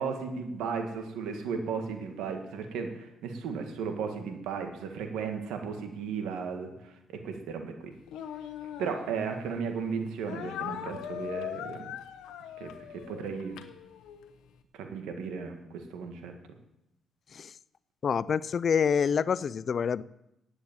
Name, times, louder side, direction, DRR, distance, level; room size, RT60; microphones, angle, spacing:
voice 1, 0.0-7.9 8.8-11.9 12.6-13.7 14.7-16.4, right 5 dB, 90° right, 5 dB, 1.8 m, -35 dB
Speech, 8.1-9.6 10.3-14.3, left 10 dB, 90° left, 1.0 m, -40 dB
voice 2, 18.0-20.0, left 7 dB, 50° left, 19 dB, 0.4 m, -27 dB
10.0 x 8.1 x 8.9 m, 0.85 s
cardioid pair, 90°, 0 cm